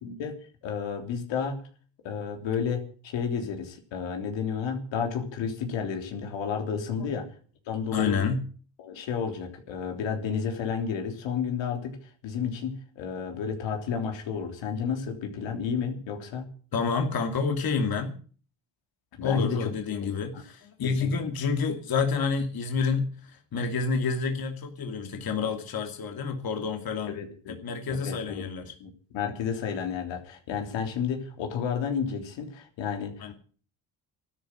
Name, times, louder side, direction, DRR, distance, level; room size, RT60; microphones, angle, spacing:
voice 1, 0.0-0.3 0.6-1.6 2.0-7.3 7.7-8.2 8.8-12.0 12.2-16.5 19.2-19.7 20.3-20.4 20.8-21.2 27.1-27.6 27.9-28.5 28.8-33.3, left 6 dB, 80° left, 4 dB, 3.4 m, -31 dB
voice 2, 7.9-8.4 16.7-18.1 19.2-27.2 27.5-28.6 33.2-33.3, left 5 dB, 55° left, 4 dB, 2.7 m, -28 dB
12.5 x 9.8 x 9.9 m, 0.43 s
cardioid pair, 85°, 44 cm